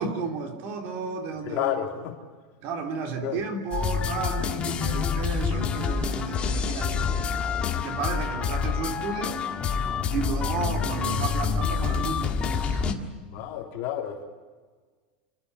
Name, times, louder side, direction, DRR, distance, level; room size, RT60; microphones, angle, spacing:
voice 1, 0.0-1.8 2.6-7.4 7.8-9.4 10.1-13.1, right 5 dB, 50° right, 4 dB, 3.3 m, -33 dB
voice 2, 1.4-2.2 3.2-3.4 13.3-14.2, left 11 dB, 45° left, 1 dB, 3.3 m, -30 dB
sound 1, 3.7-12.9, left 6 dB, 25° left, 1.7 m, -27 dB
28.5 x 12.5 x 9.7 m, 1.4 s
supercardioid pair, 150°, 5 cm